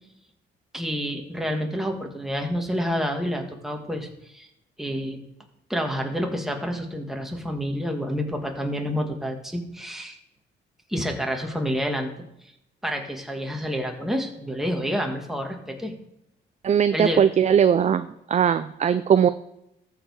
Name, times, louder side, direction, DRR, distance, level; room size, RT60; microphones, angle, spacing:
voice 1, 0.7-4.5 4.8-5.2 5.7-10.2 10.9-12.1 12.8-15.9 16.9-17.2, equal, ahead, 2 dB, 1.7 m, -28 dB
voice 2, 16.6-19.3, right 8 dB, 35° right, 12 dB, 0.4 m, -20 dB
14.0 x 4.7 x 4.7 m, 0.83 s
cardioid pair, 90°, 20 cm